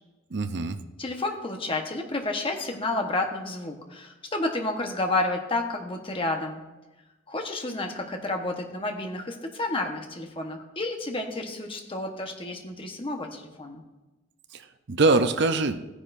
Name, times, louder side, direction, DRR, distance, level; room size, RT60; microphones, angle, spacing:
voice 1, 0.3-0.8 14.5-15.9, right 3 dB, 55° right, 9 dB, 0.6 m, -24 dB
voice 2, 1.0-6.6 7.3-13.8, left 2 dB, 25° left, 3 dB, 1.1 m, -30 dB
15.0 x 10.0 x 2.6 m, 1.1 s
head